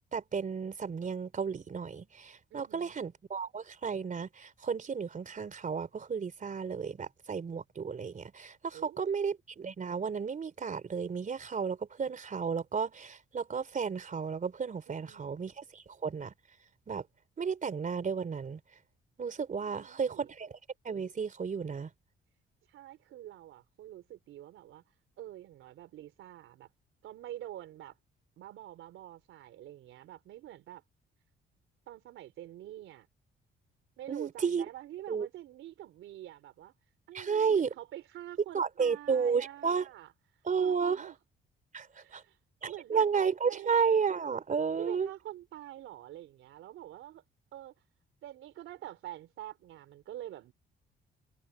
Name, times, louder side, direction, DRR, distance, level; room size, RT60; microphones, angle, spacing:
voice 1, 0.1-16.3 16.9-17.0 17.4-18.6 19.2-20.6 20.8-21.9 34.1-34.6 35.1-35.3 37.1-37.7 38.5-39.8 40.4-41.1 41.7-42.2 42.6-45.1, right 6 dB, 40° right, 3.5 m, -32 dB
voice 2, 2.5-3.0 8.7-9.2 14.9-15.4 19.6-20.3 22.7-24.8 25.2-26.7 27.0-28.0 28.4-30.8 31.9-33.1 34.0-36.7 37.1-40.1 40.6-41.2 41.9-42.4 42.7-43.1 43.4-43.7 44.8-47.2 47.5-47.7 48.2-50.5, right 13 dB, 85° right, 3.9 m, -46 dB
cardioid pair, 90°, 20 cm